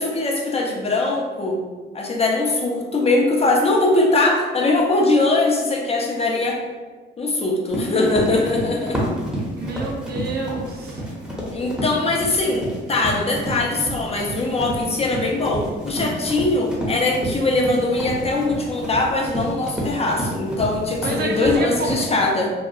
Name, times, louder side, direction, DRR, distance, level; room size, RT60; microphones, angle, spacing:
voice 1, 0.0-1.6 1.9-6.6 7.2-9.0 11.5-22.5, left 2 dB, 30° left, 0 dB, 0.4 m, -21 dB
Run, 7.7-21.9, equal, 5° right, 0.7 m, -29 dB
voice 2, 9.6-11.0 21.0-22.1, right 3 dB, 55° right, 0 dB, 0.5 m, -28 dB
2.7 x 2.2 x 2.3 m, 1.4 s
cardioid pair, 90°, 20 cm